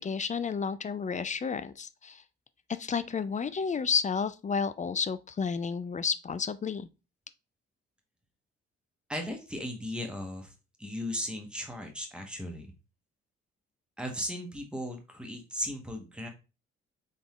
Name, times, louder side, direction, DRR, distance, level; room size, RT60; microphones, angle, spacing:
voice 1, 0.0-2.2 2.8-6.9, left 6 dB, 25° left, 0.4 m, -31 dB
voice 2, 9.1-10.5 10.8-12.7 14.0-16.3, equal, 5° right, 1.5 m, -36 dB
4.0 x 3.5 x 3.2 m
hypercardioid pair, 40°, 33 cm